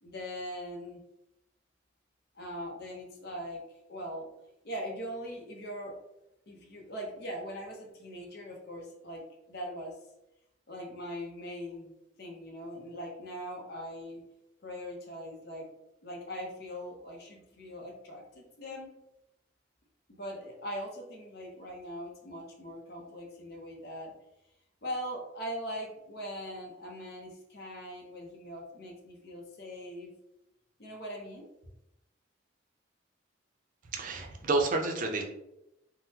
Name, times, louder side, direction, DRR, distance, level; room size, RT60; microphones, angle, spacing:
voice 1, 0.0-1.0 2.3-3.6 3.9-4.3 4.6-6.0 6.5-10.0 10.7-11.9 12.2-14.2 14.6-15.7 16.0-18.9 20.1-24.1 24.8-30.1 30.8-31.5, equal, 55° left, 0 dB, 0.8 m, -41 dB
voice 2, 33.9-35.2, right 3 dB, 45° right, 3 dB, 0.5 m, -29 dB
3.7 x 2.1 x 2.8 m, 0.86 s
head